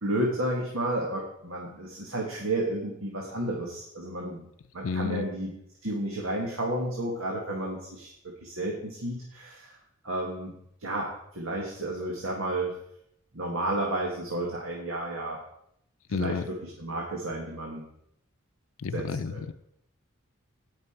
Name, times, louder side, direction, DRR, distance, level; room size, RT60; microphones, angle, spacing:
voice 1, 0.0-4.4 4.7-5.5 5.8-9.8 10.0-10.5 10.8-12.8 13.3-15.4 16.1-17.8 18.9-19.5, right 1 dB, 75° right, 2.0 m, -32 dB
voice 2, 4.8-5.2 16.1-16.5 18.8-19.5, left 5 dB, 75° left, 0.5 m, -31 dB
17.5 x 6.1 x 4.5 m
head